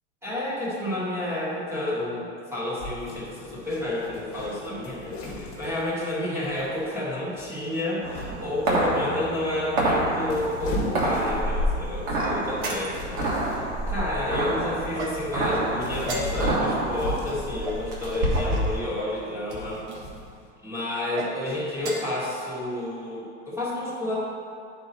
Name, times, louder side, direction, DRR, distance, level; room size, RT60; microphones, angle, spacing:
voice 1, 0.2-19.8 20.6-24.2, left 1 dB, 5° right, -9 dB, 1.6 m, -30 dB
sound 1, 2.8-6.1 6.4-6.9 7.3-7.6 8.1-8.6 9.4-9.8 10.2-11.6 12.1-12.3 12.7-13.7 14.5-14.7 15.2-17.8 18.4-18.7 19.3-20.5, left 1 dB, 35° left, 1.5 m, -37 dB
sound 2, 8.0-18.8, right 1 dB, 40° right, 1.5 m, -28 dB
sound 3, 12.1-13.2 14.9-15.5 16.0-16.7 17.6-18.6 19.4-20.0 21.0-21.3 21.7-22.2, right 2 dB, 65° right, 1.5 m, -35 dB
9.6 x 4.5 x 4.1 m, 2.5 s
supercardioid pair, 155°, 37 cm